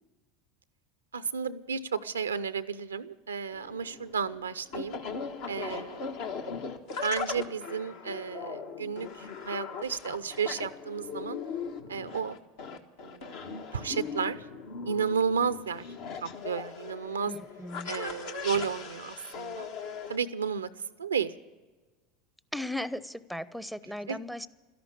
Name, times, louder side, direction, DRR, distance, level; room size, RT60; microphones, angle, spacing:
voice 1, 1.1-5.0 5.5-6.4 7.0-11.4 11.9-12.4 13.0-14.4 14.9-15.9 16.2-17.3 17.8-19.7 20.1-20.7 21.0-21.3 24.1-24.2, right 6 dB, 90° right, 14 dB, 0.5 m, -32 dB
sound 1, 3.5-20.2, left 5 dB, 65° left, 1.4 m, -39 dB
voice 2, 17.3-18.0 22.5-24.5, left 1 dB, ahead, 17 dB, 0.6 m, -37 dB
13.0 x 11.0 x 8.5 m, 1.3 s
hypercardioid pair, 80°, 0 cm